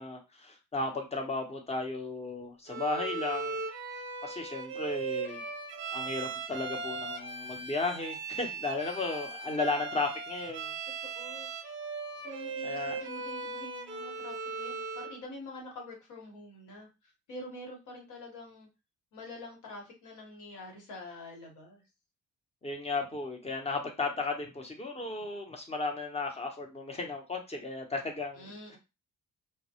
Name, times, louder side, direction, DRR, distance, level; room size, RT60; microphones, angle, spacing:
voice 1, 0.0-3.6 4.2-5.4 5.9-10.8 12.6-13.0 22.6-28.8, left 3 dB, 20° left, 3 dB, 0.7 m, -35 dB
Bowed string instrument, 2.7-15.2, right 4 dB, 40° right, 0.5 m, -38 dB
voice 2, 9.2-9.8 11.0-11.5 12.2-18.7 19.1-21.8 28.3-28.8, left 1 dB, 75° left, 0 dB, 1.1 m, -46 dB
2.1 x 2.1 x 2.8 m, 0.26 s
cardioid pair, 90°, 30 cm